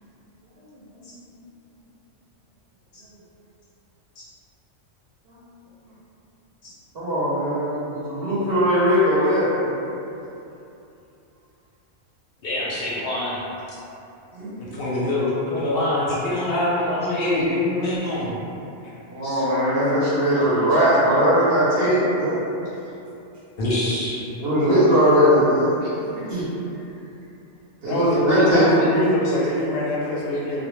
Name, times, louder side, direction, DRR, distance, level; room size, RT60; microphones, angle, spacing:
voice 1, 6.9-9.8 14.3-14.8 19.1-22.4 24.4-26.4 27.8-28.7, equal, 60° right, -9 dB, 0.8 m, -20 dB
voice 2, 12.4-13.4 14.6-18.4 19.2-19.4 23.6-24.2 25.8-25.9 30.3-30.4, left 1 dB, 60° left, -8 dB, 0.6 m, -24 dB
voice 3, 27.9-30.7, left 1 dB, 90° left, -5 dB, 1.0 m, -23 dB
2.2 x 2.1 x 3.0 m, 2.8 s
omnidirectional pair, 1.3 m